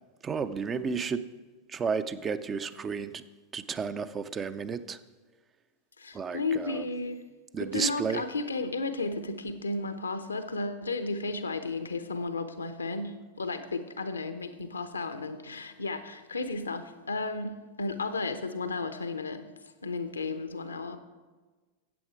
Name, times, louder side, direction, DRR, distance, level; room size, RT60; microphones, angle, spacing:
voice 1, 0.2-1.2 1.7-3.2 3.5-5.0 6.1-6.8 7.5-8.2, right 5 dB, 20° right, 12 dB, 0.5 m, -32 dB
voice 2, 6.0-7.2 7.6-19.4 19.8-21.0, left 3 dB, 75° left, 10 dB, 0.8 m, -33 dB
13.5 x 8.7 x 4.7 m, 1.3 s
figure-of-eight pair, 90°, 0 cm